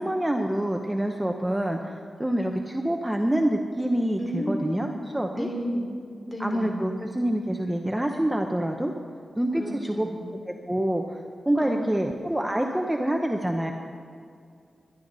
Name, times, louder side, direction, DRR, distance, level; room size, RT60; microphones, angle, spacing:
voice 1, 0.0-4.9 5.1-5.5 6.4-8.9 9.4-10.1 10.5-11.2 11.5-13.7, right 1 dB, 10° right, 3 dB, 0.9 m, -26 dB
voice 2, 4.2-4.9 5.3-5.9 6.3-6.8 9.6-10.2 11.6-12.1, equal, 25° left, 1 dB, 3.1 m, -32 dB
22.0 x 11.5 x 4.1 m, 2.3 s
wide cardioid pair, 95°, 0 cm